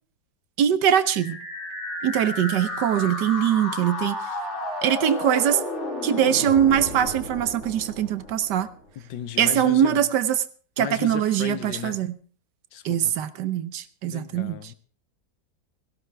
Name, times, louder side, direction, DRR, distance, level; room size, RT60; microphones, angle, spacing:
voice 1, 0.6-1.4 2.0-4.2 4.8-5.6 6.0-8.7 9.4-10.4 10.8-12.2 12.8-14.5, right 10 dB, 70° right, 1.4 m, -22 dB
sound 1, 0.9-8.9, left 1 dB, 40° left, 3.2 m, -33 dB
voice 2, 8.9-10.0 10.8-12.0 12.7-13.2 14.0-14.7, left 9 dB, 85° left, 1.6 m, -35 dB
17.5 x 15.5 x 3.4 m
omnidirectional pair, 2.0 m